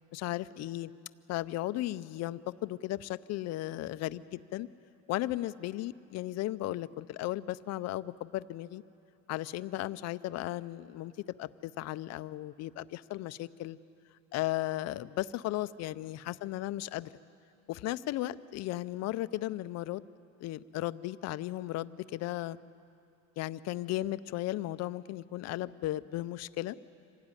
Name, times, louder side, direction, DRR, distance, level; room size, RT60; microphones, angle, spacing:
voice 1, 0.1-0.9 1.3-4.7 5.1-8.8 9.3-11.1 11.4-13.8 14.3-17.1 17.7-20.0 20.4-22.6 23.4-26.8, left 15 dB, 50° left, 15 dB, 0.5 m, -35 dB
26.0 x 17.5 x 9.8 m, 2.6 s
cardioid pair, 170°, 35 cm